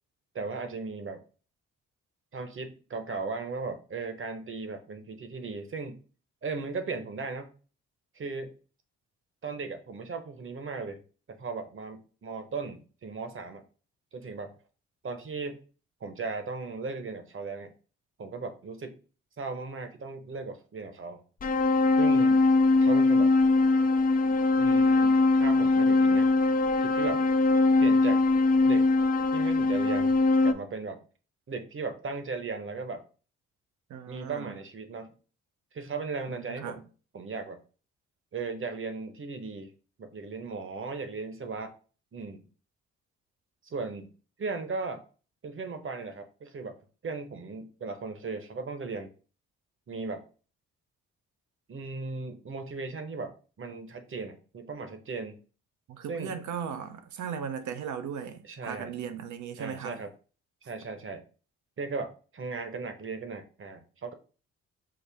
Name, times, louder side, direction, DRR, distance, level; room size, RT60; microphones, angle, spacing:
voice 1, 0.3-1.2 2.3-6.0 6.4-7.5 8.1-8.5 9.4-11.0 11.3-13.6 14.1-14.5 15.0-15.6 16.0-17.7 18.2-19.0 19.4-21.2 22.0-22.4 22.8-23.3 24.6-26.3 26.8-27.2 27.8-28.2 28.6-28.9 29.3-31.0 31.5-33.0 34.1-35.1 35.7-36.8 37.1-37.6 38.3-39.7 40.0-41.7 42.1-42.5 43.6-44.1 44.4-45.0 45.4-46.8 47.0-49.1 49.9-50.2 51.7-55.3 56.1-56.3 58.4-58.9 59.6-60.1 60.7-61.2 61.8-64.1, right 4 dB, 40° right, 1.0 m, -37 dB
sound 1, 21.4-30.5, left 3 dB, 30° left, 0.4 m, -22 dB
voice 2, 33.9-34.6 36.3-36.8 55.9-60.0, right 7 dB, 70° right, 0.8 m, -37 dB
5.7 x 2.1 x 3.4 m
supercardioid pair, 60°, 31 cm